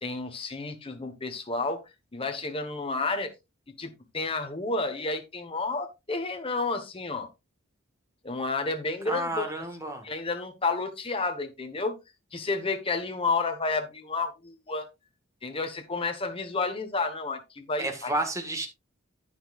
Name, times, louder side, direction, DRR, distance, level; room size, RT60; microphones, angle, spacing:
voice 1, 0.0-1.8 2.1-3.3 3.8-7.3 8.2-9.4 10.0-12.0 12.3-14.9 15.4-18.1, left 3 dB, 25° left, 1.2 m, -31 dB
voice 2, 9.0-10.0 17.8-18.7, right 1 dB, 15° right, 1.6 m, -31 dB
9.9 x 9.4 x 2.4 m
head